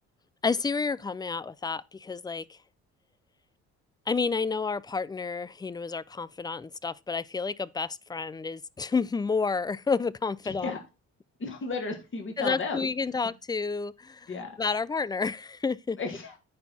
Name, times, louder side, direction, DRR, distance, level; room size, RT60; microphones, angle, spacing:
voice 1, 0.4-2.6 4.1-10.7 12.4-14.3 14.6-16.0, left 4 dB, 15° left, 0.3 m, -30 dB
voice 2, 10.4-10.8 11.4-12.9 14.3-14.6 16.0-16.4, left 4 dB, 40° left, 2.2 m, -34 dB
9.4 x 4.5 x 4.2 m
cardioid pair, 90°, 30 cm